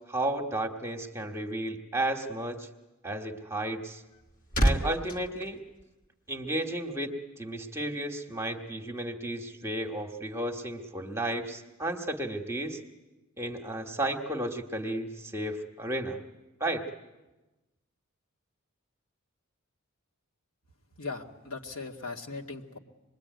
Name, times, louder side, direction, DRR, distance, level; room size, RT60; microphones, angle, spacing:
voice 1, 0.1-2.7 3.0-4.0 4.6-5.6 6.3-12.8 13.4-16.2 16.6-16.9, right 1 dB, 15° right, 3 dB, 1.3 m, -33 dB
sound 1, 3.8-6.5 6.8-7.0, right 1 dB, 40° left, 1.7 m, -30 dB
voice 2, 21.0-22.8, left 3 dB, 75° left, 1 dB, 2.1 m, -39 dB
25.5 x 21.5 x 9.3 m, 1.1 s
head